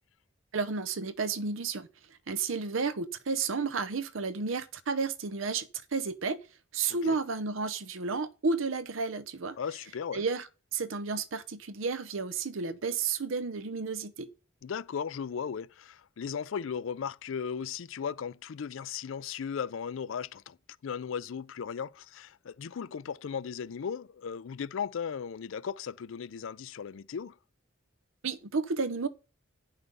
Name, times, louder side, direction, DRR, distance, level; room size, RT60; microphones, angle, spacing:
voice 1, 0.5-1.9 2.3-6.4 6.7-9.6 10.1-14.3 28.2-29.1, right 4 dB, 75° right, 0.7 m, -32 dB
voice 2, 9.6-10.2 14.6-20.6 20.8-27.3, left 7 dB, 70° left, 0.4 m, -36 dB
9.5 x 5.5 x 5.4 m
head